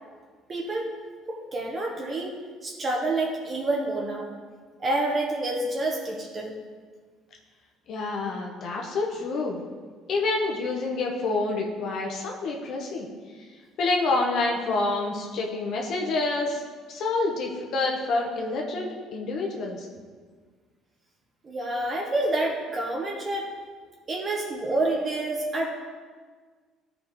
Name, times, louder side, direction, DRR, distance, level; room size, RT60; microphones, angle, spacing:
voice 1, 0.5-0.9 1.3-2.3 2.6-4.3 4.8-6.6 21.4-23.5 24.1-25.7, right 2 dB, 35° right, 0 dB, 1.0 m, -28 dB
voice 2, 7.9-9.6 10.1-13.1 13.8-16.6 16.9-19.9, left 3 dB, 60° left, 0 dB, 1.0 m, -27 dB
12.0 x 5.1 x 3.1 m, 1.6 s
cardioid pair, 105°, 0 cm